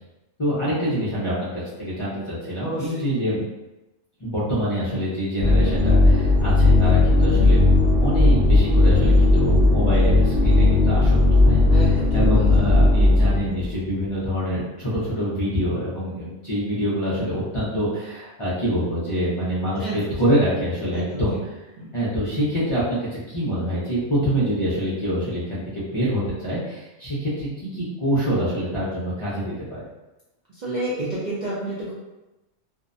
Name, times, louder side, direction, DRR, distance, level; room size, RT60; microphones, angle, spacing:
voice 1, 0.4-3.4 4.2-7.6 8.0-21.3 21.9-23.0 23.3-29.8, equal, 35° left, -10 dB, 0.5 m, -25 dB
sound 1, 5.4-13.7, left 2 dB, 80° right, 1.1 m, -16 dB
voice 2, 11.7-12.5 19.8-20.3 20.9-21.2 21.8-21.9 30.5-31.9, right 1 dB, 55° right, -8 dB, 0.5 m, -30 dB
2.6 x 2.1 x 2.5 m, 1.0 s
omnidirectional pair, 1.2 m